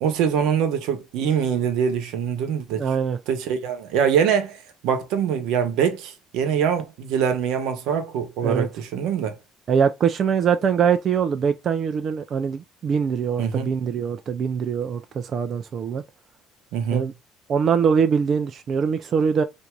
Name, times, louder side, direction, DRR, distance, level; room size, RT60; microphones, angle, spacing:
voice 1, 0.0-2.8 3.3-9.4 13.4-13.7 16.7-17.1, right 7 dB, 85° right, 0.9 m, -24 dB
voice 2, 2.8-3.2 8.4-8.7 9.7-16.0 16.9-17.1 17.5-19.4, right 7 dB, 40° right, 0.4 m, -23 dB
4.5 x 2.6 x 2.3 m
cardioid pair, 145°, 0 cm